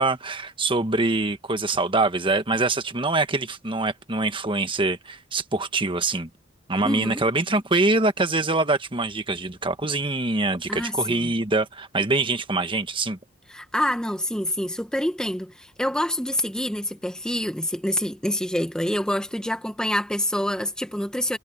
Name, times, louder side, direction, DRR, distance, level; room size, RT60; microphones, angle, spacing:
voice 1, 0.0-6.3 6.7-13.2, right 2 dB, 25° right, 1.3 m, -24 dB
voice 2, 6.8-7.2 10.7-11.3 13.5-21.4, left 1 dB, 5° left, 1.2 m, -26 dB
head